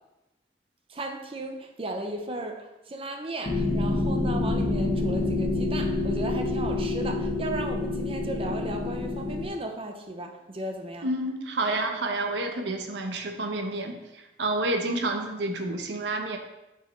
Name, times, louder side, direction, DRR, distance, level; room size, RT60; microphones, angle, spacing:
voice 1, 0.9-11.1, right 2 dB, 30° right, 4 dB, 0.6 m, -36 dB
sound 1, 3.4-9.5, left 2 dB, 40° left, 0.9 m, -27 dB
voice 2, 11.0-16.4, right 2 dB, 85° right, 4 dB, 0.8 m, -29 dB
7.9 x 4.5 x 3.1 m, 0.96 s
head